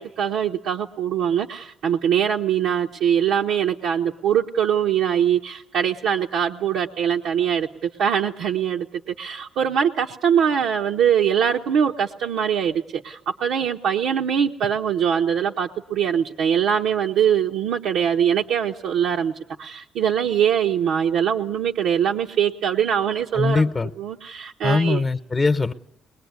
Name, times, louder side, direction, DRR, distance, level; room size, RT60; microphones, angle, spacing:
voice 1, 0.0-19.3 19.6-23.6 24.0-25.0, right 8 dB, 85° right, 1.1 m, -22 dB
voice 2, 23.3-23.9 24.6-25.7, left 3 dB, 30° left, 1.0 m, -21 dB
22.0 x 21.5 x 9.6 m
cardioid pair, 90°, 0 cm